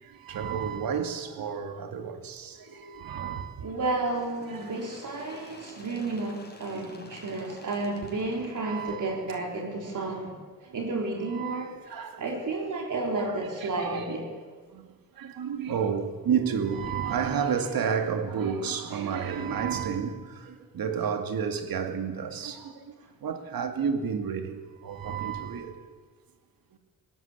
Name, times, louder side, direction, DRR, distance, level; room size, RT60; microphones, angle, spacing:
voice 1, 0.0-3.7 4.6-4.7 6.7-6.9 7.3-7.6 8.6-9.2 10.7-10.8 11.3-12.2 13.6-14.2 14.7-22.9 23.2-25.8 26.7-26.8, right 7 dB, 85° right, 2.4 m, -31 dB
voice 2, 3.6-10.4 10.7-14.3, right 2 dB, 60° right, 3.8 m, -32 dB
Bird, 4.0-9.4 10.3-10.4 10.8-10.9 11.8-11.9 12.8-12.9 13.7-13.8, left 2 dB, 30° left, 4.7 m, -50 dB
20.0 x 19.0 x 8.5 m
wide cardioid pair, 130°, 34 cm